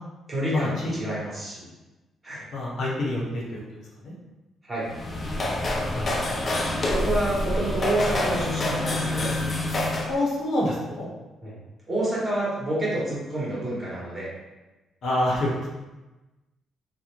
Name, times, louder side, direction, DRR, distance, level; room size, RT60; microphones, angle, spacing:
voice 1, 0.3-1.7 2.2-2.4 4.7-4.9 6.9-9.3 11.4-11.6 11.9-14.3, right 1 dB, 25° right, -7 dB, 1.1 m, -28 dB
voice 2, 2.5-3.4 4.0-4.1 5.9-6.2 10.1-11.1 15.0-15.7, left 1 dB, 65° left, -5 dB, 0.8 m, -26 dB
sound 1, 4.8-10.2, left 1 dB, 40° left, 0.4 m, -27 dB
2.4 x 2.0 x 3.0 m, 1.1 s
cardioid pair, 90°, 0 cm